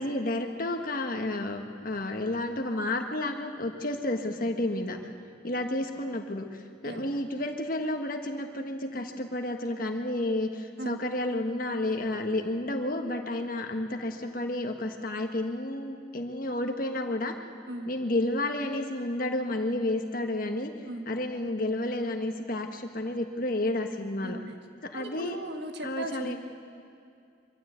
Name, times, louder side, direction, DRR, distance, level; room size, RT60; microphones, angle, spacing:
voice 1, 0.0-5.0 5.4-17.3 17.8-20.7 21.1-24.4 24.8-25.4 25.8-26.4, left 1 dB, 50° left, 4 dB, 1.6 m, -31 dB
voice 2, 6.8-7.2 10.8-11.0 17.7-17.9 20.9-21.1 24.2-24.6 24.9-26.4, right 1 dB, 60° right, 5 dB, 1.8 m, -38 dB
24.0 x 14.5 x 8.2 m, 2.4 s
head